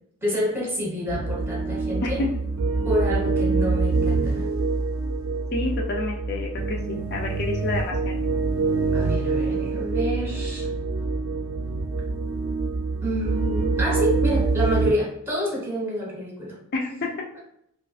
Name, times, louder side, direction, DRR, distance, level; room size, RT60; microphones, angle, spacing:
voice 1, 0.2-2.2 2.8-4.5 8.9-10.7 13.0-16.6 16.9-17.4, equal, 10° right, -3 dB, 1.1 m, -28 dB
sound 1, 1.1-14.9, right 3 dB, 65° right, 0.4 m, -25 dB
voice 2, 5.5-8.2 16.7-17.1, left 3 dB, 45° left, 1 dB, 0.4 m, -29 dB
5.0 x 2.4 x 2.3 m, 0.75 s
head